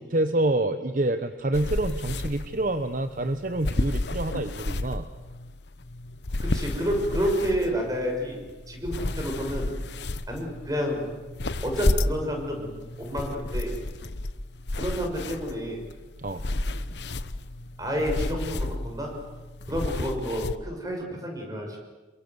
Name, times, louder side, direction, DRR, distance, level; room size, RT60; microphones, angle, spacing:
voice 1, 0.0-5.1 16.2-16.4, right 1 dB, 50° right, 9 dB, 1.0 m, -27 dB
sound 1, 1.5-20.6, left 2 dB, 80° left, 1.0 m, -32 dB
voice 2, 6.4-8.4 8.7-9.7 10.3-11.0 11.6-13.7 14.8-15.8 17.8-19.1 19.7-21.8, equal, 20° right, 2 dB, 6.3 m, -29 dB
27.5 x 23.0 x 8.1 m, 1.2 s
head